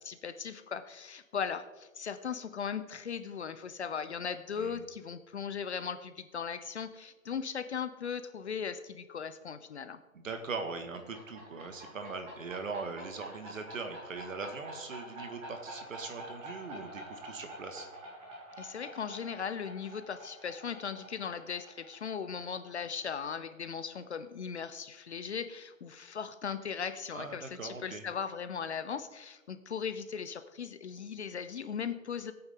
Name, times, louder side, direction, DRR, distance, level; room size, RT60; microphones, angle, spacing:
voice 1, 0.0-10.0 18.6-32.3, left 7 dB, 55° left, 11 dB, 0.8 m, -38 dB
voice 2, 10.1-17.9 27.1-28.0, right 4 dB, 65° right, 5 dB, 2.1 m, -41 dB
sound 1, 10.7-24.1, right 1 dB, 15° right, 2.2 m, -48 dB
17.5 x 8.8 x 3.7 m, 1.2 s
figure-of-eight pair, 145°, 41 cm